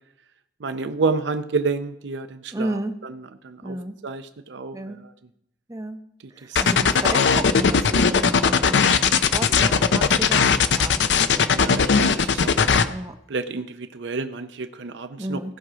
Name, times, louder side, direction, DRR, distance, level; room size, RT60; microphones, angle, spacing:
voice 1, 0.6-3.2 3.4-3.8 4.0-5.1 6.4-6.6 8.1-8.3 11.5-12.8 13.3-15.6, right 4 dB, 85° right, 10 dB, 0.6 m, -30 dB
voice 2, 2.5-3.0 3.6-4.0 4.7-5.0 5.7-6.0 6.3-11.7 12.9-13.2 15.2-15.6, right 1 dB, 20° right, 7 dB, 0.7 m, -33 dB
sound 1, 6.5-12.8, left 5 dB, 90° left, 0.6 m, -18 dB
17.0 x 6.2 x 5.0 m, 0.76 s
head